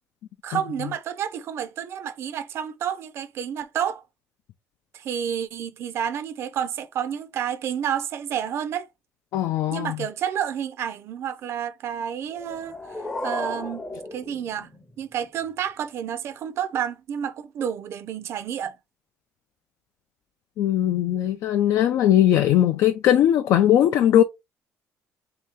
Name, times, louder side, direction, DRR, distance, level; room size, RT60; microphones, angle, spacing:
voice 1, 0.4-4.0 4.9-8.9 9.7-12.7 13.2-13.9 14.1-14.7 15.0-18.7, right 9 dB, 50° right, 0.5 m, -30 dB
voice 2, 9.3-10.0 20.6-24.2, left 11 dB, 65° left, 0.4 m, -19 dB
sound 1, 12.3-15.3, left 2 dB, 10° left, 0.6 m, -35 dB
3.1 x 2.8 x 3.5 m
cardioid pair, 150°, 6 cm